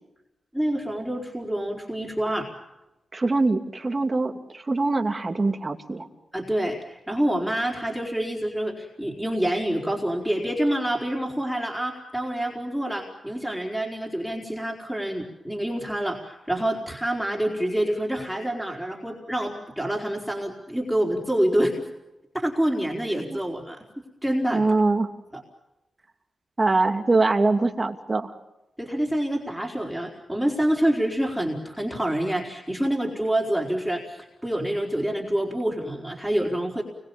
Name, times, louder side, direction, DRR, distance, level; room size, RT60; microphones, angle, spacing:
voice 1, 0.5-2.5 6.3-21.8 22.3-23.8 24.2-24.6 28.8-36.8, right 1 dB, 5° right, -2 dB, 4.3 m, -27 dB
voice 2, 3.1-6.1 23.2-23.4 24.5-25.1 26.6-28.3, right 3 dB, 30° right, 5 dB, 2.7 m, -23 dB
29.0 x 22.5 x 7.2 m, 0.97 s
wide cardioid pair, 100°, 0 cm